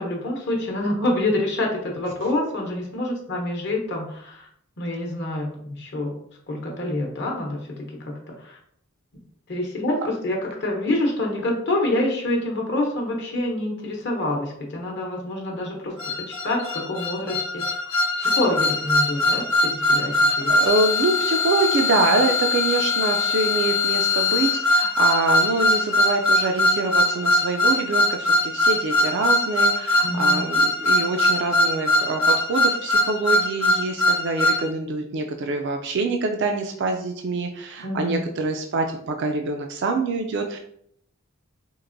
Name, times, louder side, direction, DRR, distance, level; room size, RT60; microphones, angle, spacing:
voice 1, 0.0-4.5 4.8-6.1 6.5-8.6 9.5-17.6 18.2-20.5 30.0-30.4 37.8-38.2, left 1 dB, 55° left, 0 dB, 0.9 m, -27 dB
sound 1, 16.0-34.6, left 1 dB, 90° left, 0.9 m, -21 dB
voice 2, 20.5-40.6, right 3 dB, 55° right, 3 dB, 0.4 m, -25 dB
4.5 x 2.5 x 2.5 m, 0.67 s
head